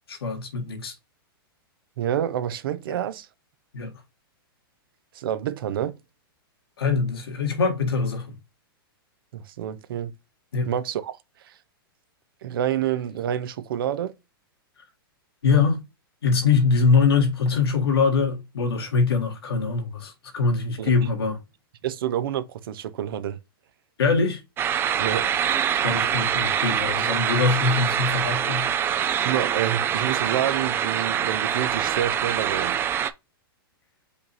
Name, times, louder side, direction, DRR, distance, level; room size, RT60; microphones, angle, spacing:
voice 1, 0.1-1.0 2.9-3.0 3.7-3.9 6.8-8.4 10.5-10.7 15.4-15.8 16.2-21.4 24.0-24.4 25.8-28.7, left 4 dB, 90° left, 1.8 m, -23 dB
voice 2, 2.0-3.3 5.1-6.0 9.3-10.1 10.7-11.5 12.4-14.1 20.8-20.9 21.8-23.4 25.0-25.3 29.2-32.8, right 10 dB, 70° right, 0.6 m, -28 dB
sound 1, 24.6-33.1, right 9 dB, 20° right, 0.3 m, -24 dB
5.2 x 2.5 x 4.2 m
hypercardioid pair, 135°, 12 cm